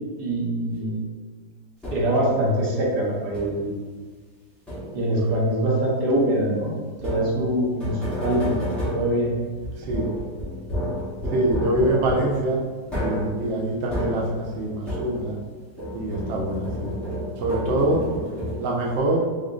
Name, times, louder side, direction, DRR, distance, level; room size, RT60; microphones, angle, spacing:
voice 1, 0.2-1.0 1.9-3.7 4.9-6.8 7.0-8.5 8.9-9.3, right 1 dB, 65° right, -3 dB, 1.3 m, -23 dB
sound 1, 1.8-2.3 3.3-3.8 4.7-5.2 7.0-15.5 15.8-18.9, left 1 dB, ahead, 0.5 m, -31 dB
voice 2, 9.8-10.1 11.3-12.6 12.9-15.4 15.9-16.9 17.4-18.0 18.6-19.3, right 2 dB, 85° right, -2 dB, 0.6 m, -24 dB
3.6 x 2.1 x 3.7 m, 1.5 s
omnidirectional pair, 2.0 m